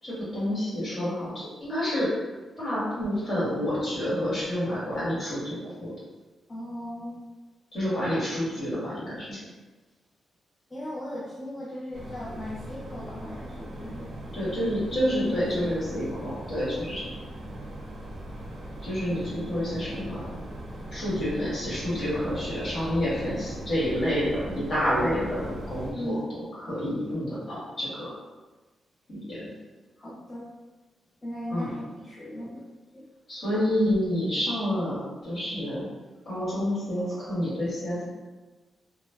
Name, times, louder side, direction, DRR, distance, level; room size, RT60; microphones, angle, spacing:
voice 1, 0.0-2.1 2.6-5.9 7.7-9.4 14.3-17.1 18.8-20.3 20.9-28.1 29.1-29.5 31.5-31.7 33.3-35.8 36.2-38.1, equal, 45° left, -9 dB, 1.5 m, -29 dB
voice 2, 6.5-7.3 10.7-14.1 15.3-15.9 25.9-26.3 30.0-30.5 31.2-32.6 32.9-33.1, left 1 dB, 25° left, -8 dB, 0.5 m, -37 dB
sound 1, 11.9-25.9, right 1 dB, 55° right, 0.5 m, -39 dB
3.0 x 2.0 x 2.3 m, 1.2 s
cardioid pair, 110°, 0 cm